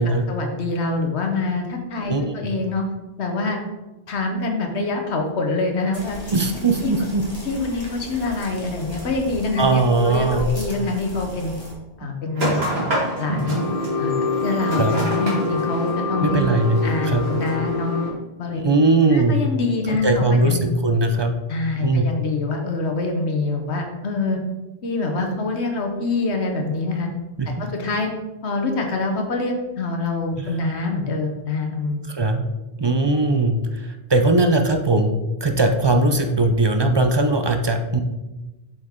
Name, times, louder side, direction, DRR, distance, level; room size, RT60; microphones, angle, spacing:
voice 1, 0.0-2.9 3.2-3.6 4.1-6.2 6.8-6.9 7.4-11.5 12.0-12.6 13.2-13.6 14.0-14.1 14.4-16.4 16.8-17.9 18.4-18.6 19.1-20.6 21.5-24.4 24.8-27.1 27.5-28.1 28.4-32.0, left 3 dB, 80° left, 3 dB, 1.3 m, -25 dB
voice 2, 2.1-2.5 6.3-7.2 9.6-10.5 14.8-14.9 16.2-17.2 18.5-19.4 19.9-21.3 21.8-22.1 27.4-27.6 30.4-30.5 32.1-32.5 32.8-35.1 35.4-38.0, right 2 dB, 35° right, 5 dB, 0.4 m, -19 dB
sound 1, 5.9-11.7, left 1 dB, 25° left, 1.7 m, -36 dB
sound 2, 12.3-18.1, left 1 dB, 65° right, 2.4 m, -24 dB
7.3 x 5.3 x 3.7 m, 1.1 s
omnidirectional pair, 1.1 m